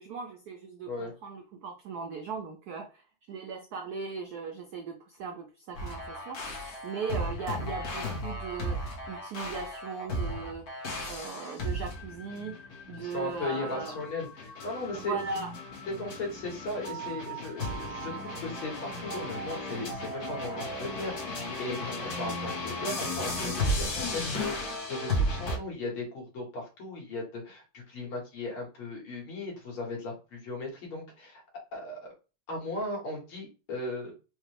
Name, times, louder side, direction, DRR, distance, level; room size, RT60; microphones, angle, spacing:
voice 1, 0.0-3.0 3.3-8.8 9.1-12.6 12.9-14.0 14.9-15.5, right 5 dB, 90° right, 4 dB, 0.8 m, -38 dB
sound 1, 5.7-25.6, left 1 dB, 55° left, 1.3 m, -35 dB
voice 2, 12.9-15.3 16.0-31.4 31.7-32.1 32.5-34.1, left 2 dB, 80° left, -2 dB, 2.3 m, -37 dB
5.0 x 2.2 x 3.1 m, 0.32 s
omnidirectional pair, 2.3 m